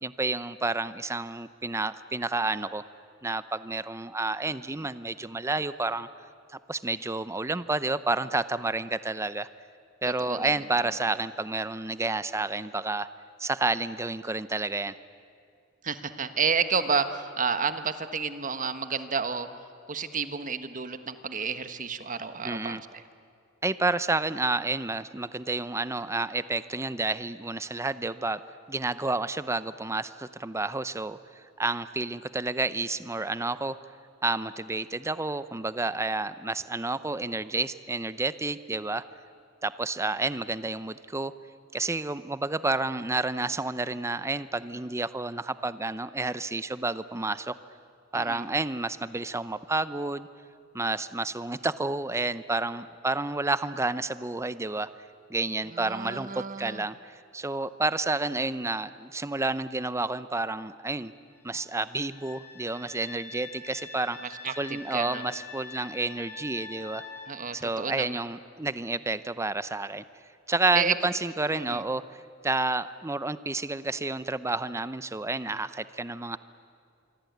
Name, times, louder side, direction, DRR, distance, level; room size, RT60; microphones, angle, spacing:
voice 1, 0.0-2.8 3.2-6.1 6.5-9.5 10.0-13.1 13.4-14.9 22.4-22.8 23.6-28.4 28.7-31.2 31.6-33.8 34.2-39.0 39.6-41.3 41.7-47.5 48.1-50.3 50.7-54.9 55.3-61.1 61.4-64.2 64.6-67.0 67.5-70.0 70.5-76.4, right 3 dB, 15° right, 14 dB, 0.7 m, -30 dB
voice 2, 10.0-10.5 15.8-19.5 19.9-23.0 48.1-48.4 55.7-56.8 64.2-65.2 67.3-68.1 70.7-70.9 71.5-71.8, right 5 dB, 40° right, 10 dB, 1.3 m, -30 dB
sound 1, 61.3-67.3, left 5 dB, 15° left, 4.8 m, -44 dB
26.0 x 23.5 x 9.4 m, 2.3 s
head